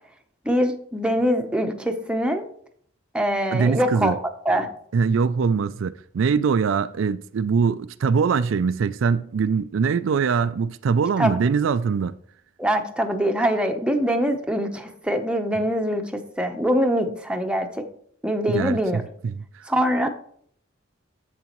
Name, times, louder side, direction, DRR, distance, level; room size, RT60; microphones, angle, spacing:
voice 1, 0.4-2.5 3.1-4.2 4.4-4.7 11.2-11.4 12.6-17.8 18.2-19.0 19.7-20.1, equal, 5° right, 0.8 m, -23 dB
voice 2, 3.5-4.2 4.9-12.1 18.5-19.7, right 5 dB, 75° right, 0.4 m, -22 dB
10.5 x 7.4 x 3.0 m
head